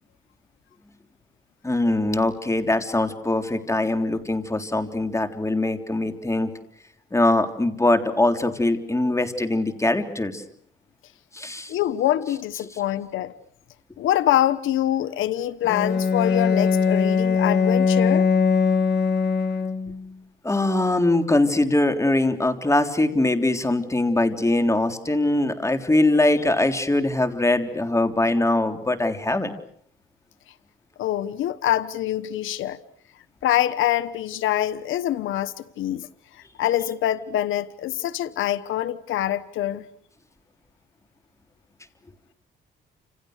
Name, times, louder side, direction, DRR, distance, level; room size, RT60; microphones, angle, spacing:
voice 1, 1.6-6.5 7.1-10.4 11.3-11.7 20.4-29.5, left 2 dB, 15° left, 3.6 m, -22 dB
voice 2, 11.7-13.3 14.0-18.3 31.0-32.8 33.4-36.1 36.3-39.8, left 12 dB, 80° left, 1.1 m, -25 dB
Bowed string instrument, 15.6-20.1, left 5 dB, 60° left, 3.0 m, -21 dB
29.5 x 28.0 x 6.5 m
cardioid pair, 90°, 20 cm